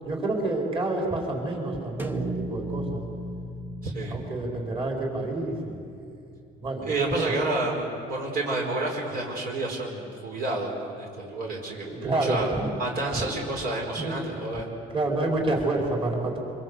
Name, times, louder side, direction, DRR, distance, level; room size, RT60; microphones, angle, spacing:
voice 1, 0.0-3.0 4.1-6.2 6.6-7.4 11.8-12.7 13.1-13.3 14.0-14.1 14.9-16.4, right 2 dB, 30° right, 0 dB, 5.1 m, -28 dB
sound 1, 2.0-6.2, right 1 dB, 10° right, 1.4 m, -36 dB
voice 2, 3.8-4.2 6.8-12.5 12.8-14.7, right 2 dB, 60° right, -1 dB, 4.9 m, -30 dB
25.0 x 25.0 x 8.2 m, 2.5 s
cardioid pair, 110°, 17 cm